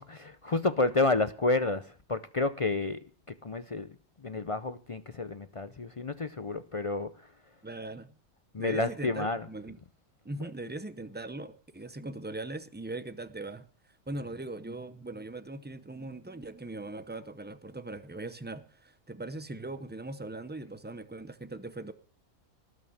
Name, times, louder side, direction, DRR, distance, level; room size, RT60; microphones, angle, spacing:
voice 1, 0.0-3.0 3.4-3.9 4.2-7.1 8.5-9.4, left 3 dB, 60° left, 0.3 m, -30 dB
voice 2, 7.6-8.1 8.6-9.8 10.2-13.7 14.1-21.9, right 2 dB, 15° right, 0.4 m, -40 dB
19.0 x 6.3 x 7.2 m
omnidirectional pair, 1.5 m